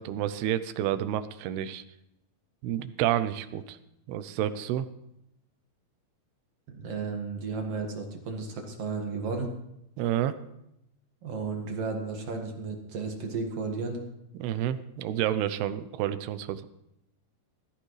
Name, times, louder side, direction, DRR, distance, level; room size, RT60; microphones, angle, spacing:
voice 1, 0.0-1.8 2.6-3.8 4.1-4.9 10.0-10.4 14.4-16.7, right 11 dB, 80° right, 13 dB, 2.6 m, -29 dB
voice 2, 6.7-9.5 11.2-14.0, right 4 dB, 50° right, 2 dB, 2.0 m, -33 dB
18.5 x 14.0 x 3.2 m, 0.82 s
omnidirectional pair, 4.8 m